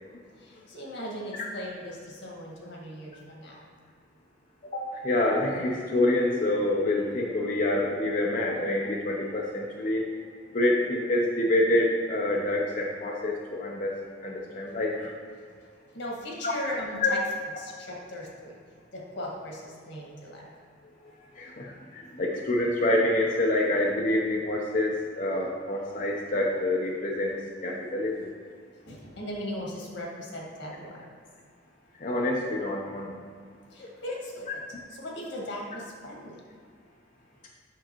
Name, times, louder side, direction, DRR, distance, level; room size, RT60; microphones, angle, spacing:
voice 1, 0.4-3.6 15.9-17.2 17.6-18.5 18.9-20.4 28.8-31.0 33.7-34.5 35.0-36.4, left 1 dB, 90° left, -2 dB, 1.6 m, -38 dB
voice 2, 4.7-10.1 10.5-14.0 14.2-15.1 16.4-16.5 17.0-17.1 20.8-28.3 31.9-33.2 33.8-33.9, left 1 dB, 45° left, -2 dB, 0.6 m, -27 dB
7.4 x 6.1 x 2.9 m, 2.1 s
head